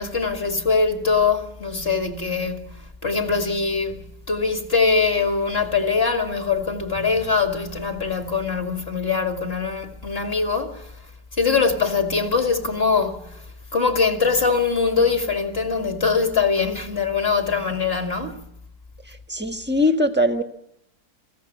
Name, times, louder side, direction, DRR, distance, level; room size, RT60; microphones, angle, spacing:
voice 1, 0.0-4.0 4.3-10.9 11.4-13.4 13.7-18.5, left 5 dB, 35° left, 2.4 m, -22 dB
voice 2, 19.1-20.4, left 1 dB, 5° right, 1.2 m, -21 dB
22.0 x 16.0 x 8.6 m
omnidirectional pair, 1.9 m